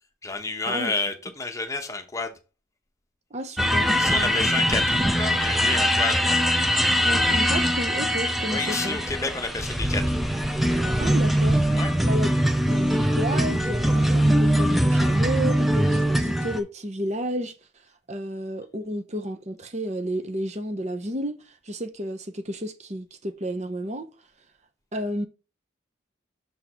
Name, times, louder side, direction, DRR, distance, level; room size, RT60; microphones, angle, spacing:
voice 1, 0.2-2.3 3.9-6.3 8.5-10.2 11.7-11.9, left 3 dB, 15° left, 1.0 m, -30 dB
voice 2, 3.3-4.5 7.0-9.0 11.0-11.7 12.0-12.4 12.7-17.5 18.1-24.1 24.9-25.3, right 1 dB, 35° right, 0.9 m, -31 dB
sound 1, 3.6-16.6, equal, ahead, 0.7 m, -22 dB
7.1 x 3.8 x 4.4 m
head